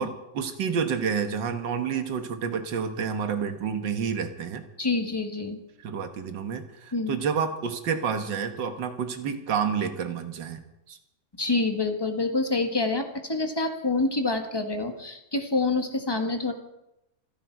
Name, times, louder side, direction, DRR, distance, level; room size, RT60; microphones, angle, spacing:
voice 1, 0.0-4.6 5.8-10.6 10.9-11.0, right 6 dB, 85° right, 8 dB, 2.0 m, -29 dB
voice 2, 4.8-5.6 6.9-7.2 11.4-16.5, left 3 dB, 15° left, 5 dB, 1.5 m, -27 dB
27.5 x 10.5 x 4.6 m, 0.87 s
omnidirectional pair, 1.9 m